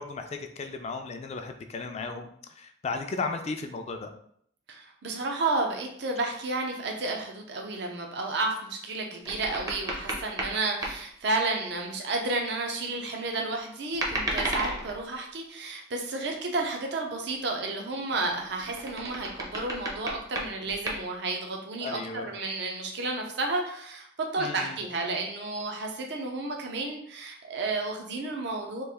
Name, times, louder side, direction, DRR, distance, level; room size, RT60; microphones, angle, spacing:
voice 1, 0.0-2.3 2.6-4.1 21.8-22.3 24.4-24.8, left 4 dB, 35° left, 6 dB, 0.3 m, -35 dB
voice 2, 4.7-24.1 24.3-28.8, right 2 dB, 65° right, 1 dB, 0.6 m, -31 dB
sound 1, 9.2-10.6 10.8-11.0 13.9-15.0 18.1-21.0, right 1 dB, 20° right, 0.6 m, -33 dB
3.1 x 2.4 x 3.5 m, 0.67 s
head